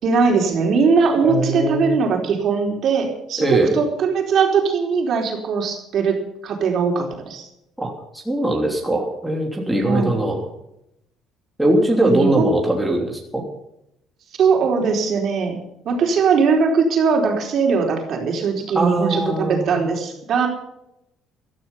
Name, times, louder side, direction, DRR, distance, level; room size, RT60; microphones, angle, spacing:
voice 1, 0.0-7.5 9.8-10.2 12.0-12.5 14.4-15.6 15.8-20.5, right 5 dB, 50° right, 2 dB, 4.4 m, -20 dB
voice 2, 1.2-1.9 3.4-3.8 7.8-10.4 11.6-13.4 18.7-19.8, right 1 dB, 5° right, -1 dB, 3.1 m, -21 dB
15.0 x 14.0 x 5.7 m, 0.82 s
cardioid pair, 145°, 0 cm